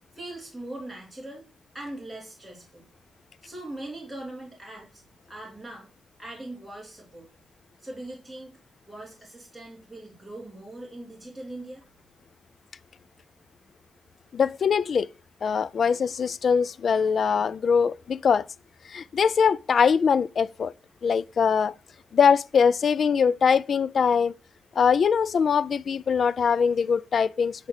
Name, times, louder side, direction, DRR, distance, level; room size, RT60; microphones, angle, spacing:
voice 1, 0.1-1.5 1.7-2.8 3.4-5.0 5.3-5.9 6.2-7.3 7.8-8.5 8.9-11.8, right 1 dB, 5° right, 3.0 m, -40 dB
voice 2, 14.3-15.1 15.4-18.4 18.9-20.7 21.0-21.7 22.1-24.3 24.8-27.7, left 6 dB, 50° left, 0.4 m, -22 dB
9.6 x 4.3 x 6.5 m
wide cardioid pair, 135°, 0 cm